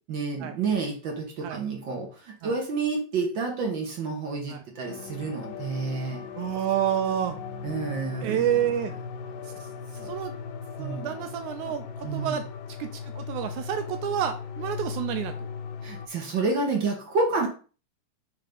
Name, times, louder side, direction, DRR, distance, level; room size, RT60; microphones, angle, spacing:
voice 1, 0.1-6.2 7.6-8.4 10.0-10.1 10.8-11.2 12.0-12.4 15.8-17.5, right 4 dB, 65° right, 1 dB, 1.2 m, -29 dB
sound 1, 4.9-16.1, left 6 dB, 90° left, 2.3 m, -38 dB
voice 2, 6.4-7.4 8.2-8.9 10.1-10.3 10.8-12.4 12.8-15.5, right 10 dB, 80° right, 8 dB, 1.9 m, -29 dB
5.8 x 3.5 x 5.1 m, 0.37 s
omnidirectional pair, 3.7 m